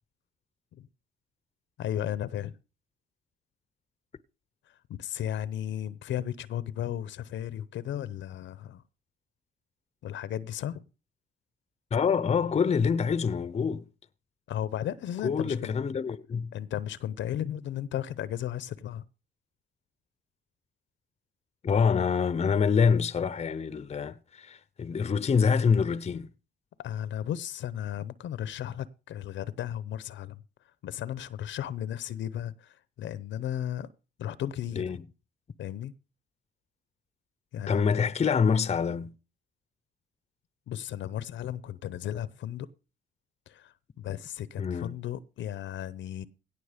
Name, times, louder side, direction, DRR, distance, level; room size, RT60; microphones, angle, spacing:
voice 1, 1.8-2.5 4.9-8.8 10.0-10.8 14.5-15.7 16.5-19.0 26.8-30.4 30.8-33.9 34.2-35.0 35.6-35.9 37.5-37.9 40.7-42.7 43.5-46.3, left 11 dB, 70° left, 0.8 m, -35 dB
voice 2, 11.9-13.9 15.2-16.5 21.6-26.3 34.8-35.0 37.7-39.1 44.6-44.9, left 6 dB, 35° left, 0.7 m, -26 dB
17.0 x 6.1 x 5.1 m
cardioid pair, 90°, 20 cm